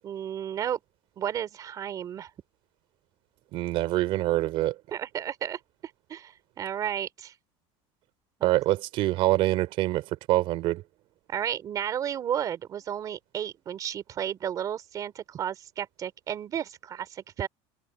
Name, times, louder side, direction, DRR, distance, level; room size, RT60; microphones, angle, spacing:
voice 1, 0.0-0.8 1.2-2.3 4.9-7.3 8.4-8.5 11.3-17.5, right 9 dB, 30° right, 3.3 m, -33 dB
voice 2, 3.5-4.7 8.4-10.8, right 16 dB, 45° right, 3.3 m, -25 dB
cardioid pair, 165°, 12 cm